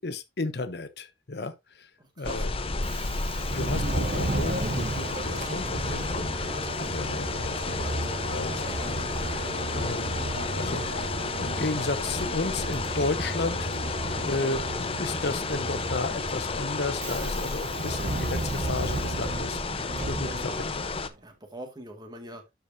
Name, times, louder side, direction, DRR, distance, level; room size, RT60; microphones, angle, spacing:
voice 1, 0.0-1.9 2.2-2.5 3.5-9.5 9.7-11.1 11.4-20.9, left 3 dB, 65° left, 0.9 m, -34 dB
voice 2, 2.0-2.9 21.2-22.4, right 1 dB, 25° right, 2.0 m, -43 dB
sound 1, 2.2-21.1, left 3 dB, 30° left, 0.7 m, -32 dB
Subway metro underground, 2.7-21.1, right 2 dB, 45° right, 0.8 m, -36 dB
sound 2, 4.4-17.4, right 1 dB, 65° right, 1.5 m, -36 dB
12.5 x 5.0 x 2.7 m
head